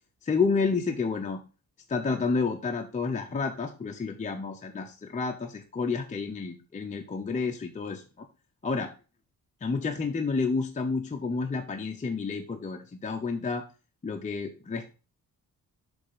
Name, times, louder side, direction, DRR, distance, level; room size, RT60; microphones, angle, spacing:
voice 1, 0.2-1.4 1.9-8.3 8.6-8.9 9.6-13.6 14.0-14.9, left 4 dB, 20° left, 3 dB, 0.5 m, -30 dB
6.9 x 3.3 x 5.4 m, 0.34 s
wide cardioid pair, 170°, 38 cm